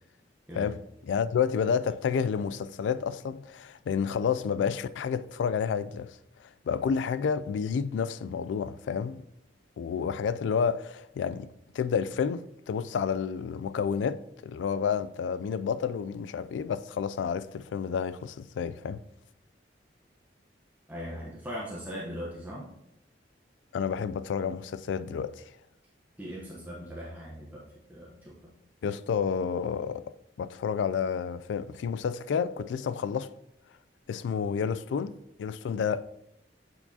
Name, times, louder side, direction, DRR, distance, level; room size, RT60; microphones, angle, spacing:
voice 1, 0.5-9.2 9.8-11.5 11.7-19.0 23.7-25.4 28.8-33.3 34.1-36.1, left 6 dB, 85° left, 0.3 m, -30 dB
voice 2, 20.9-22.7 26.2-28.5, equal, 10° right, 0.9 m, -40 dB
7.9 x 4.6 x 2.8 m
head